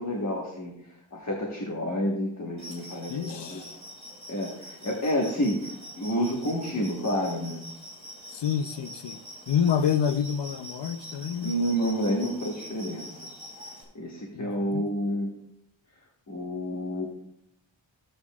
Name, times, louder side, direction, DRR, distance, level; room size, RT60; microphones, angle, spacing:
voice 1, 0.0-3.6 4.3-7.6 11.4-13.1 13.9-15.3 16.3-17.1, equal, 35° left, 1.4 m, -29 dB
sound 1, 2.6-13.8, equal, 15° right, 4.4 m, -44 dB
voice 2, 3.1-3.7 8.3-9.2 9.5-11.5 14.3-14.8, left 8 dB, 60° left, 0.6 m, -28 dB
15.5 x 7.9 x 2.4 m
wide cardioid pair, 140°, 47 cm